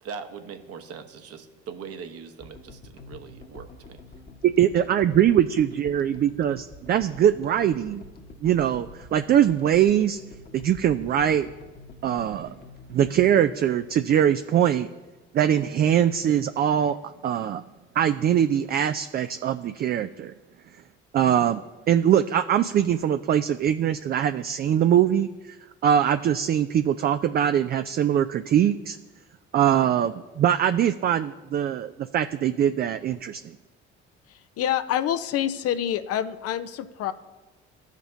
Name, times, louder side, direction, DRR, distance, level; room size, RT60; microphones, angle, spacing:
voice 1, 0.0-4.0, right 6 dB, 45° right, 7 dB, 1.1 m, -40 dB
sound 1, 2.4-14.7, left 3 dB, 30° left, 1.2 m, -47 dB
voice 2, 4.4-8.1 8.4-10.2 10.5-11.5 12.0-12.5 12.9-14.9 15.3-17.0 17.2-17.6 18.0-20.3 21.1-25.6 25.8-29.0 29.5-33.4, right 10 dB, 30° right, 10 dB, 0.4 m, -22 dB
voice 3, 34.6-37.1, left 10 dB, 45° left, 12 dB, 0.6 m, -26 dB
15.5 x 5.1 x 2.6 m, 1.2 s
figure-of-eight pair, 50°, 34 cm